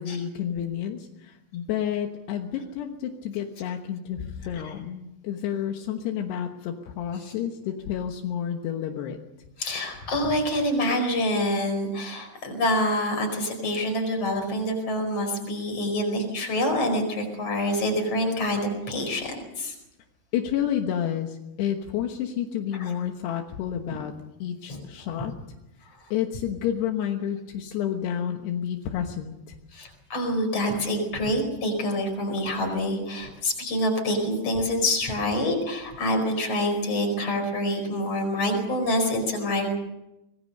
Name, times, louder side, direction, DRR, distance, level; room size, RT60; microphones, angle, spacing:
voice 1, 0.0-9.2 20.3-24.1 24.4-25.3 26.1-29.6, left 9 dB, 80° left, 4 dB, 3.4 m, -30 dB
voice 2, 9.6-19.7 22.8-22.9 23.9-24.0 24.7-24.8 29.7-39.7, left 1 dB, 35° left, 4 dB, 5.7 m, -26 dB
25.0 x 20.5 x 6.6 m, 0.94 s
omnidirectional pair, 4.8 m